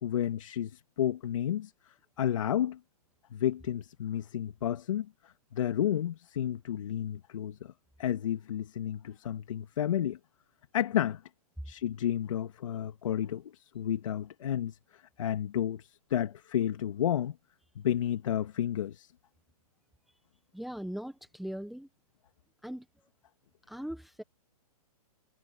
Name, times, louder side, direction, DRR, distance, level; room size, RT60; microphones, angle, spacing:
voice 1, 0.0-2.8 3.3-7.7 8.0-10.2 10.7-11.2 11.6-17.4 17.8-19.1, left 10 dB, 55° left, 2.4 m, -31 dB
voice 2, 20.5-21.9 22.6-22.8 23.7-24.2, equal, ahead, 1.4 m, -39 dB
hypercardioid pair, 155°, 20 cm